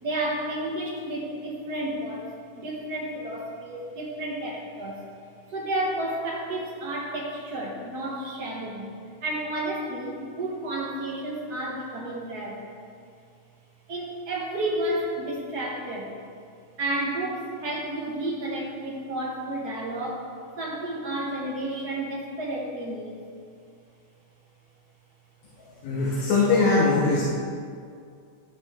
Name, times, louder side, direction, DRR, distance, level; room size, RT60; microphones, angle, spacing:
voice 1, 0.0-2.3 2.5-5.0 5.5-8.9 9.2-12.6 13.9-16.2 16.8-20.3 20.6-23.2 25.4-25.5, right 1 dB, 50° right, -2 dB, 1.2 m, -31 dB
voice 2, 25.8-27.2, left 3 dB, 70° left, -4 dB, 2.4 m, -21 dB
13.0 x 9.1 x 3.7 m, 2.3 s
omnidirectional pair, 3.4 m